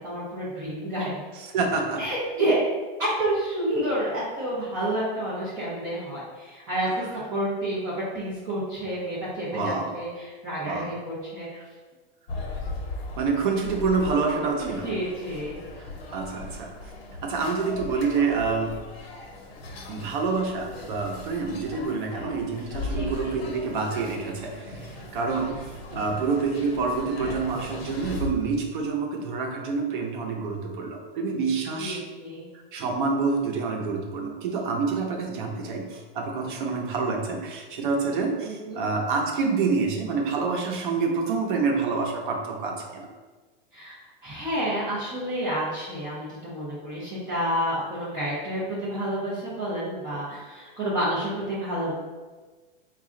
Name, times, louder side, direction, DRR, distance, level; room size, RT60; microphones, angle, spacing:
voice 1, 0.0-1.2 2.0-2.6 3.0-11.6 14.6-15.6 22.7-23.4 31.8-32.5 38.4-38.8 43.7-44.0 44.2-51.9, right 1 dB, 10° right, -10 dB, 0.3 m, -29 dB
voice 2, 1.3-2.0 9.5-10.0 10.6-11.0 13.2-14.9 15.7-16.9 17.2-18.8 19.9-32.0 32.7-43.1, right 4 dB, 55° right, 1 dB, 0.7 m, -27 dB
sound 1, 12.3-28.3, left 2 dB, 90° left, 1.0 m, -38 dB
4.1 x 2.4 x 3.7 m, 1.3 s
supercardioid pair, 170°, 29 cm